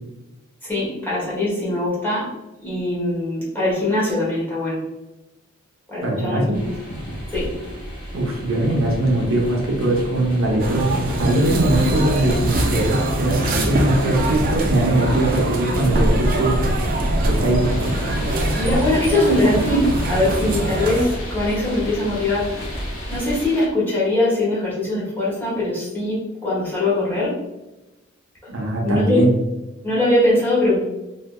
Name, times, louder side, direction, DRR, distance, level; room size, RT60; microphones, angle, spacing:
voice 1, 0.6-2.3 2.6-4.8 5.9-6.7 7.3-7.5 8.7-8.9 18.6-22.5 23.1-27.3 28.8-29.2 29.8-30.8, left 1 dB, 10° left, -8 dB, 1.3 m, -21 dB
voice 2, 6.0-6.6 8.1-16.5 17.2-17.9 28.5-29.3, right 1 dB, 75° right, -2 dB, 0.8 m, -21 dB
sound 1, 6.5-23.5, equal, 55° left, 0.8 m, -32 dB
sound 2, 10.6-21.0, right 1 dB, 45° right, 0.4 m, -23 dB
sound 3, 17.6-23.7, left 2 dB, 85° left, 0.9 m, -38 dB
3.3 x 2.7 x 2.2 m, 0.99 s
head